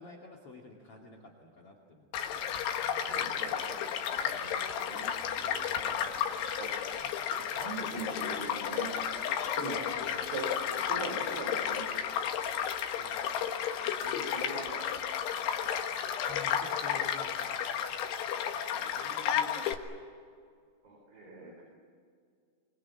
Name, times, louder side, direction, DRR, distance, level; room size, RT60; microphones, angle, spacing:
voice 1, 0.0-2.1 4.3-4.8 5.6-6.0 9.6-10.3 13.0-13.5 16.2-17.5, left 3 dB, 40° left, 2 dB, 2.9 m, -50 dB
Child speech kid speaking / Stream / Car passing by, 2.1-19.7, left 8 dB, 80° left, 3.5 m, -33 dB
voice 2, 2.7-5.1 5.4-6.7 7.0-7.2 7.5-8.9 9.4-10.0 10.3-10.5 10.9-11.8 14.0-14.8 18.7-19.8 20.8-21.6, right 3 dB, 70° right, 0 dB, 6.2 m, -42 dB
24.5 x 24.0 x 8.6 m, 2.1 s
omnidirectional pair, 4.8 m